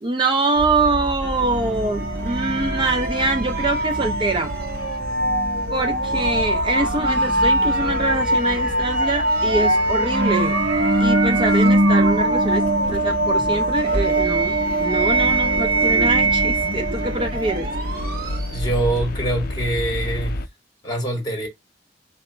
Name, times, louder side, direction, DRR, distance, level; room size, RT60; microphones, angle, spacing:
voice 1, 0.0-4.5 5.7-10.6 11.0-17.7, right 2 dB, 25° right, 0.5 m, -24 dB
sound 1, 0.5-20.5, equal, 10° left, 0.9 m, -33 dB
sound 2, 1.2-18.7, right 2 dB, 55° right, 1.0 m, -21 dB
sound 3, 12.8-13.6 15.0-20.5, left 2 dB, 55° left, 0.4 m, -31 dB
voice 2, 18.5-20.4 20.8-21.5, right 1 dB, 25° left, 1.7 m, -24 dB
4.1 x 2.9 x 4.4 m
head